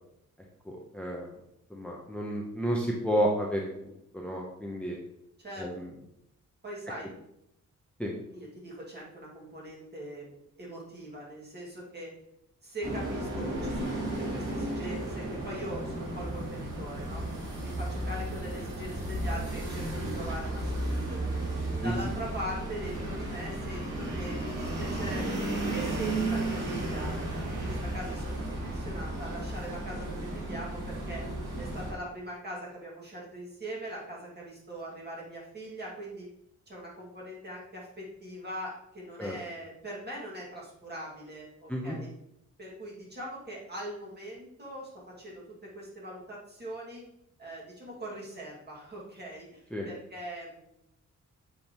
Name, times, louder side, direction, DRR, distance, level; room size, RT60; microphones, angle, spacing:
voice 1, 0.7-1.3 1.7-3.7 4.1-5.0 5.6-5.9 8.0-8.1 21.8-22.1 39.2-39.4 41.7-42.0 49.7-49.9, equal, 5° left, -2 dB, 0.8 m, -31 dB
voice 2, 6.6-7.1 8.3-12.1 12.6-14.0 14.3-17.2 17.6-21.4 21.8-27.1 27.6-31.2 31.6-36.3 36.7-42.1 42.6-44.9 45.2-47.0 47.4-50.7, right 1 dB, 35° right, -4 dB, 2.3 m, -41 dB
sound 1, 12.8-31.9, right 1 dB, 75° right, 2.2 m, -34 dB
7.7 x 5.2 x 3.1 m, 0.80 s
wide cardioid pair, 140°, 31 cm